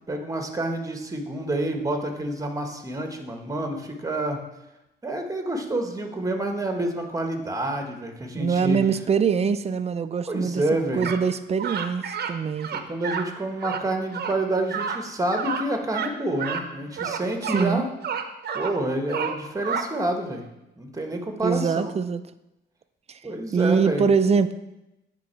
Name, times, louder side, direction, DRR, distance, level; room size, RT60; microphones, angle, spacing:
voice 1, 0.1-4.4 5.0-8.9 10.2-11.1 12.7-17.9 18.5-20.4 20.8-21.9 23.2-24.1, right 1 dB, 15° right, 4 dB, 1.1 m, -28 dB
voice 2, 8.4-10.6 10.9-12.7 17.4-17.8 21.4-22.2 23.5-24.5, right 6 dB, 30° right, 13 dB, 0.4 m, -23 dB
sound 1, 11.0-11.2 11.6-12.3 12.6-13.2 13.6-13.8 14.1-14.3 14.7-15.0 15.3-15.6 15.9-16.1 16.4-16.6 17.0-17.7 18.0-18.7 19.1-19.8, right 6 dB, 50° right, 0.8 m, -29 dB
9.4 x 3.8 x 4.4 m, 0.92 s
cardioid pair, 90°, 20 cm